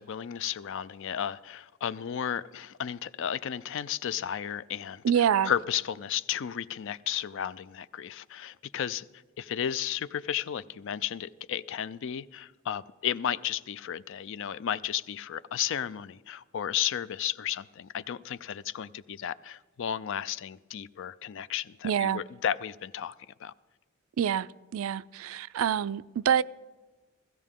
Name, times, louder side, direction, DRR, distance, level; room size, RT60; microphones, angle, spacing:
voice 1, 0.0-9.1 9.4-23.1 23.4-23.5, left 9 dB, 65° left, 0.4 m, -33 dB
voice 2, 5.0-5.5 21.8-22.2 24.2-26.4, right 8 dB, 80° right, 0.3 m, -26 dB
16.0 x 15.5 x 3.7 m
head